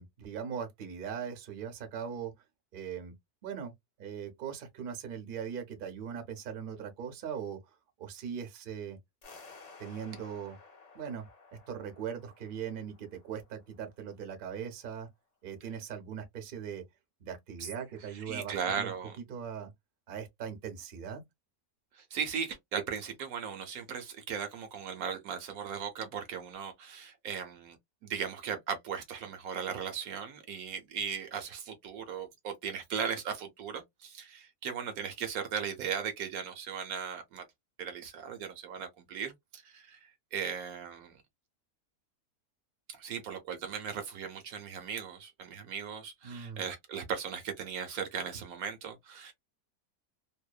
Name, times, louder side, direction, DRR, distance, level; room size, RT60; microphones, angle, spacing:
voice 1, 0.0-2.3 2.7-3.1 3.4-3.7 4.0-9.0 9.8-10.6 10.9-11.2 11.7-15.1 15.4-16.8 17.2-18.9 19.2-19.7 20.1-21.2 46.2-46.7, right 7 dB, 50° right, 0.7 m, -40 dB
sound 1, 9.2-14.2, left 4 dB, 55° left, 0.4 m, -55 dB
voice 2, 18.1-19.2 21.9-27.8 28.0-37.4 37.8-41.2 42.9-49.3, right 7 dB, 70° right, 1.0 m, -37 dB
2.7 x 2.1 x 2.3 m
omnidirectional pair, 1.7 m